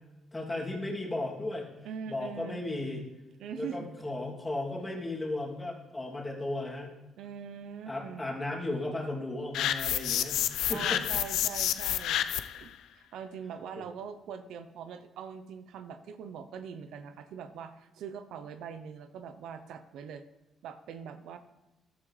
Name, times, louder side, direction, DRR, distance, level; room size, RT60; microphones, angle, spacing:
voice 1, 0.3-1.7 2.1-3.0 3.6-7.0 7.8-11.0 13.8-13.9, left 2 dB, 15° left, -2 dB, 2.7 m, -35 dB
voice 2, 1.8-2.6 3.4-3.9 7.2-8.2 10.7-12.3 12.5-20.2 20.6-21.4, right 7 dB, 80° right, 10 dB, 0.7 m, -42 dB
sound 1, 9.5-12.6, left 11 dB, 85° left, 0.5 m, -29 dB
14.0 x 11.0 x 3.3 m, 1.0 s
cardioid pair, 90°, 0 cm